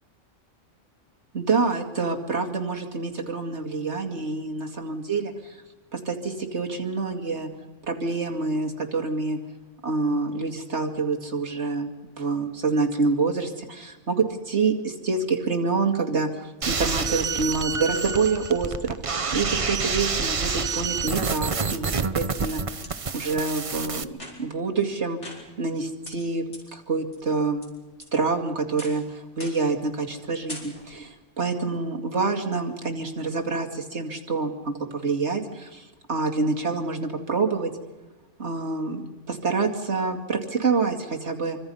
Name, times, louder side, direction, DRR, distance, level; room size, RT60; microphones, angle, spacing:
voice 1, 1.3-5.6 5.9-7.5 7.8-9.4 9.8-19.0 19.3-22.6 23.1-24.1 24.4-25.2 25.6-26.4 26.7-27.6 28.1-37.7 38.4-41.6, right 4 dB, 60° right, 1 dB, 2.7 m, -27 dB
sound 1, 16.6-24.0, right 5 dB, 30° right, 0.7 m, -28 dB
sound 2, 22.4-22.9 23.5-23.6 24.1-24.6 25.2-25.8 26.0-26.1 26.5-26.6 27.1-27.7 28.0-28.4 28.8-29.0 29.4-29.7 30.0-30.2 30.5-31.0, left 1 dB, 65° left, 5.5 m, -42 dB
27.0 x 24.5 x 5.6 m, 1.1 s
omnidirectional pair, 1.3 m